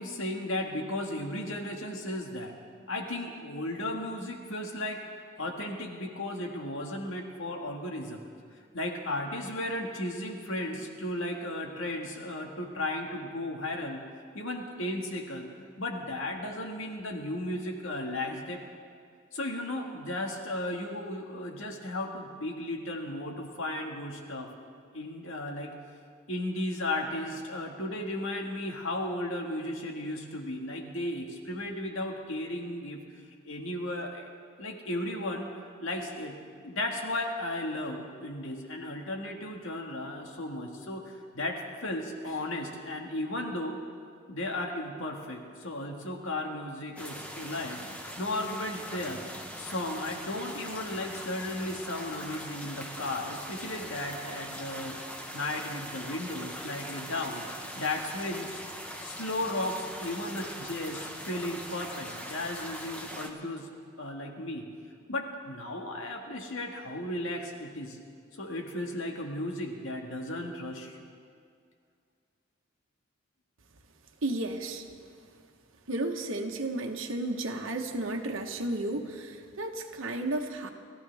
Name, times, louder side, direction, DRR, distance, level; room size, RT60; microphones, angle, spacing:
voice 1, 0.0-2.5 2.9-5.0 5.4-8.2 8.7-14.0 14.3-15.5 15.8-18.6 19.3-24.5 24.9-25.8 26.3-33.0 33.4-34.3 34.6-35.5 35.8-36.3 36.6-43.8 44.3-47.8 48.2-49.3 49.6-55.0 55.3-58.6 59.0-63.7 64.0-64.7 65.1-68.0 68.3-71.1, left 1 dB, 80° left, 2 dB, 1.9 m, -35 dB
sound 1, 47.0-63.3, equal, 5° left, 1.1 m, -41 dB
voice 2, 74.2-74.8 75.9-80.7, right 2 dB, 80° right, 2 dB, 1.2 m, -33 dB
30.0 x 14.0 x 3.5 m, 2.2 s
head